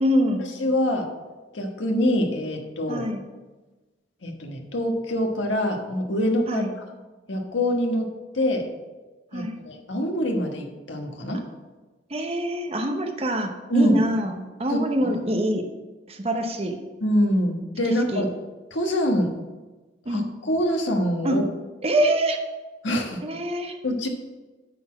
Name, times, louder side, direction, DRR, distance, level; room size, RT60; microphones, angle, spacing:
voice 1, 0.0-0.4 2.9-3.2 6.5-6.7 9.3-9.6 12.1-15.6 16.1-16.7 18.1-18.2 20.1-20.2 21.2-21.4 21.8-22.4 23.2-23.8, equal, 35° right, 3 dB, 0.9 m, -25 dB
voice 2, 0.6-1.1 1.5-3.0 4.2-6.8 7.3-8.1 8.3-8.7 9.3-11.4 13.7-14.0 14.7-15.1 17.0-18.3 18.7-19.3 20.1-21.4 22.8-23.2 23.8-24.1, equal, 80° left, 2 dB, 1.3 m, -25 dB
9.2 x 4.2 x 7.2 m, 1.2 s
head